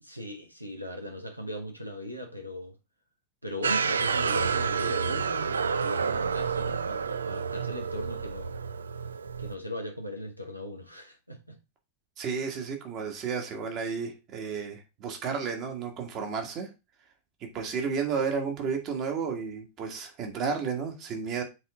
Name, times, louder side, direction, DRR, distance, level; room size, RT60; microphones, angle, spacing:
voice 1, 0.0-2.7 3.4-8.6 9.4-11.6, left 1 dB, 90° right, 1.4 m, -39 dB
sound 1, 3.6-9.5, right 6 dB, 70° right, 0.4 m, -29 dB
voice 2, 12.2-16.7 17.4-21.4, right 5 dB, 35° right, 1.8 m, -32 dB
8.0 x 4.0 x 3.7 m
figure-of-eight pair, 90°, 0 cm